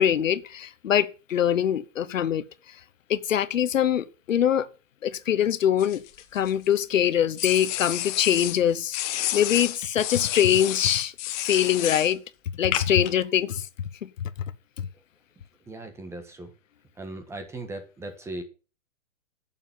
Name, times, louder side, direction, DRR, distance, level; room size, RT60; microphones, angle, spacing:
voice 1, 0.0-2.4 3.1-4.7 5.0-6.0 6.3-11.1 11.4-12.2 12.6-13.7 14.0-14.3, left 10 dB, 80° left, 1.1 m, -23 dB
sound 1, 5.8-6.8 7.4-8.6 8.9-12.1 12.7-13.1, left 14 dB, 30° left, 1.3 m, -30 dB
voice 2, 15.7-16.5 17.0-18.4, right 2 dB, 5° right, 1.5 m, -38 dB
10.5 x 7.3 x 7.6 m
hypercardioid pair, 150°, 38 cm